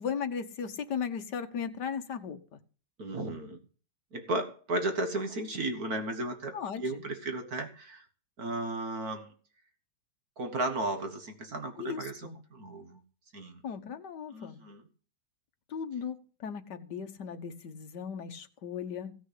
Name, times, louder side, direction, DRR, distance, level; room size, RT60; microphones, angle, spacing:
voice 1, 0.0-2.6 6.5-7.0 11.8-12.4 13.6-14.6 15.7-19.2, left 7 dB, 65° left, 1.8 m, -37 dB
voice 2, 3.0-3.6 4.1-8.0 8.4-9.3 10.4-13.0 13.3-13.6 14.3-14.8, right 2 dB, 55° right, 2.0 m, -34 dB
16.0 x 6.2 x 8.3 m
omnidirectional pair, 2.0 m